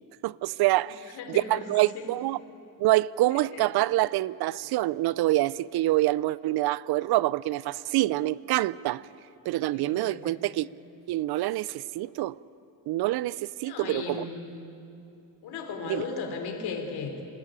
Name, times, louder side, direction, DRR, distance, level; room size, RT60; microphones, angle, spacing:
voice 1, 0.2-2.4 2.8-9.0 9.5-10.7 11.1-12.4 12.9-14.3 15.9-16.0, right 17 dB, 80° right, 0.5 m, -26 dB
voice 2, 0.8-2.1 3.5-3.6 9.7-10.5 13.6-14.5 15.4-17.3, left 5 dB, 85° left, 3.3 m, -36 dB
26.5 x 15.0 x 8.8 m
cardioid pair, 175°, 38 cm